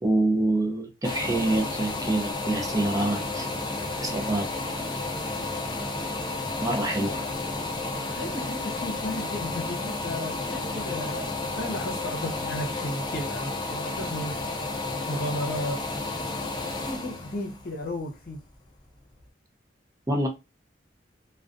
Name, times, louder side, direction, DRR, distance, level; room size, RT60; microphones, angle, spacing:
voice 1, 0.0-3.5 4.0-4.5 6.6-7.2 20.1-20.3, right 2 dB, 20° right, 0.5 m, -26 dB
sound 1, 1.0-18.7 19.2-19.3, left 2 dB, 25° left, 0.5 m, -32 dB
voice 2, 6.9-7.3 7.9-14.4 15.1-16.4 16.8-18.4, left 1 dB, 55° left, 0.8 m, -35 dB
2.3 x 2.2 x 2.5 m
head